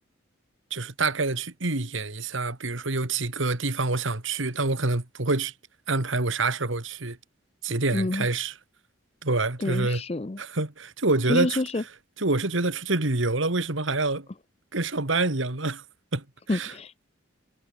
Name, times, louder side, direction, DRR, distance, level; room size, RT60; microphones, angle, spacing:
voice 1, 0.7-5.5 5.9-7.2 7.6-8.5 9.2-10.0 10.4-11.6 12.2-14.3 14.7-15.8 16.1-16.7, right 3 dB, 75° right, 2.2 m, -26 dB
voice 2, 7.9-8.3 9.6-10.4 11.3-11.8 16.5-17.1, left 2 dB, 30° left, 0.5 m, -28 dB
head